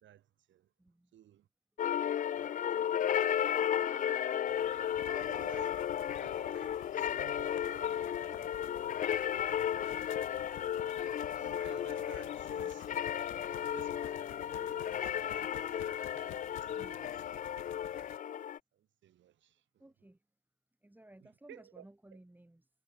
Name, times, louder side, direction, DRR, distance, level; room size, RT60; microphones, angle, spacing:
voice 1, 0.0-0.7 1.1-1.5 2.3-3.0 4.0-4.1 4.6-9.3 10.5-12.9 13.6-16.3 16.6-17.4 18.7-19.9 21.2-21.9 22.1-22.2, right 11 dB, 70° right, 2.0 m, -57 dB
voice 2, 0.8-1.2 16.7-17.6 19.8-20.2 20.8-22.7, right 1 dB, 10° right, 4.5 m, -58 dB
sound 1, 1.8-18.6, left 10 dB, 40° left, 0.4 m, -34 dB
sound 2, 4.5-18.2, left 15 dB, 80° left, 0.9 m, -53 dB
cardioid pair, 90°, 20 cm